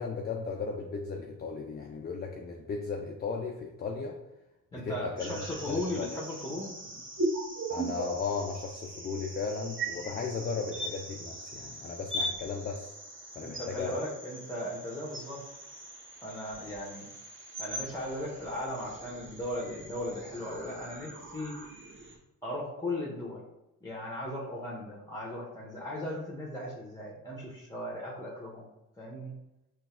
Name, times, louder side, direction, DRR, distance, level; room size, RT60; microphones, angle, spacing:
voice 1, 0.0-4.2 4.7-6.1 7.7-12.9 13.4-13.9, left 4 dB, 25° left, 1 dB, 0.3 m, -36 dB
voice 2, 4.7-6.7 13.4-15.4 16.2-17.1 17.6-21.6 22.4-23.4 23.8-28.7 29.0-29.3, left 1 dB, 10° left, -4 dB, 0.8 m, -37 dB
sound 1, 5.2-22.2, right 1 dB, 25° right, 1.1 m, -40 dB
3.9 x 2.3 x 2.4 m, 0.92 s
hypercardioid pair, 40°, 44 cm